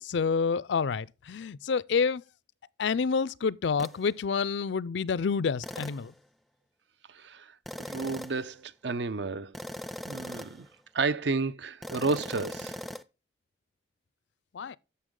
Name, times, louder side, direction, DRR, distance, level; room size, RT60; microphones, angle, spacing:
voice 1, 0.0-2.2 2.8-6.1 14.5-14.8, left 5 dB, 75° left, 0.4 m, -28 dB
sound 1, 3.8-4.0 5.6-6.1 7.7-8.5 9.5-10.7 11.8-13.0, left 1 dB, ahead, 0.4 m, -40 dB
voice 2, 7.1-7.5 7.8-9.6 10.1-10.7 10.9-12.8, right 4 dB, 70° right, 0.6 m, -31 dB
11.0 x 7.1 x 3.8 m
head